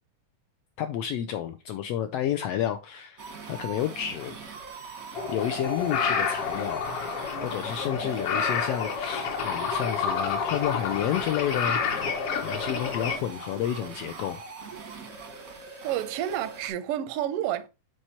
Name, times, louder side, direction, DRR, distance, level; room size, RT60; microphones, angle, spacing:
voice 1, 0.8-4.3 5.3-6.9 7.4-12.1 12.4-14.4, left 10 dB, 85° left, 1.3 m, -30 dB
sound 1, 3.2-16.7, right 4 dB, 60° right, 0.9 m, -42 dB
jungle birds, 5.1-13.2, left 6 dB, 60° left, 1.9 m, -29 dB
voice 2, 15.8-17.7, right 11 dB, 80° right, 1.3 m, -29 dB
7.5 x 4.6 x 4.3 m
omnidirectional pair, 3.4 m